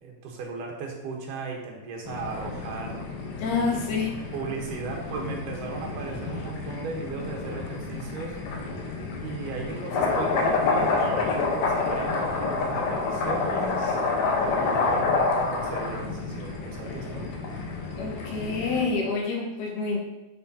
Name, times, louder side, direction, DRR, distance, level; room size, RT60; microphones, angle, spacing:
voice 1, 0.0-3.1 4.3-8.4 9.2-14.0 14.5-17.4, right 4 dB, 85° right, 1 dB, 2.7 m, -36 dB
sound 1, 2.1-18.9, left 3 dB, 70° left, 2.2 m, -28 dB
voice 2, 3.4-4.1 18.0-20.0, left 4 dB, 85° left, -1 dB, 2.9 m, -27 dB
9.5 x 5.6 x 2.7 m, 1.0 s
omnidirectional pair, 3.7 m